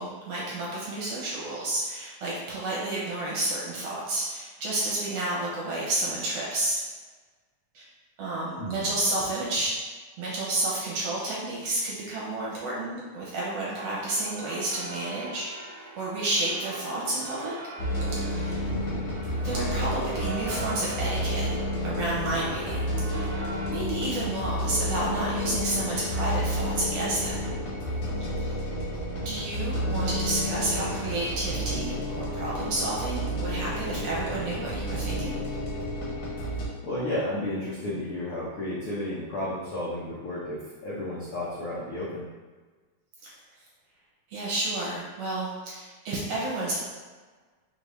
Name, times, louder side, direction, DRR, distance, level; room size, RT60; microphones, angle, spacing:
voice 1, 0.0-6.8 7.7-7.9 8.2-9.7 10.2-17.5 18.1-18.6 19.4-21.5 21.8-23.3 23.7-27.4 28.2-28.6 29.3-35.4 44.3-46.8, right 2 dB, 70° right, -6 dB, 1.8 m, -31 dB
voice 2, 8.6-8.9 18.7-19.0 29.8-30.1 36.8-42.3, left 1 dB, 85° left, -8 dB, 1.2 m, -33 dB
sound 1, 13.4-23.7, right 2 dB, 85° right, 1.3 m, -42 dB
sound 2, 17.8-36.7, equal, 65° left, 1.5 m, -30 dB
4.8 x 2.6 x 3.3 m, 1.4 s
omnidirectional pair, 3.4 m